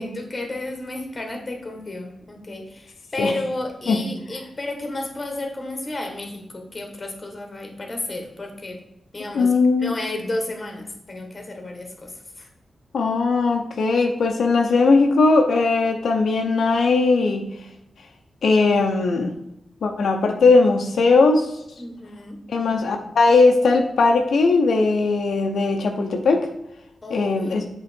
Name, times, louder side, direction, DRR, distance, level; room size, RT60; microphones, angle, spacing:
voice 1, 0.0-8.8 9.1-9.5 9.8-12.5 21.8-22.4 27.0-27.6, left 2 dB, 30° left, 3 dB, 1.4 m, -32 dB
voice 2, 9.3-9.9 12.9-17.5 18.4-19.3 19.8-21.5 22.5-26.5 27.1-27.6, left 3 dB, 80° left, 3 dB, 0.6 m, -18 dB
7.8 x 3.8 x 4.4 m, 0.83 s
wide cardioid pair, 120°, 0 cm